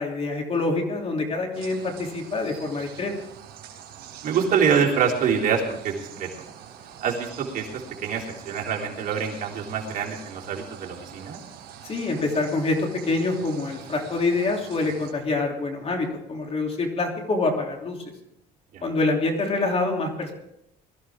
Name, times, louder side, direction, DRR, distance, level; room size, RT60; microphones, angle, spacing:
voice 1, 0.0-3.1 11.8-18.0 18.8-20.3, left 3 dB, 35° left, 2 dB, 3.2 m, -26 dB
sound 1, 1.5-15.1, right 9 dB, 75° right, 3.9 m, -45 dB
voice 2, 4.2-6.3 7.0-11.4 18.7-18.8, right 6 dB, 55° right, -2 dB, 3.7 m, -25 dB
21.5 x 14.0 x 3.7 m, 0.80 s
cardioid pair, 110°, 17 cm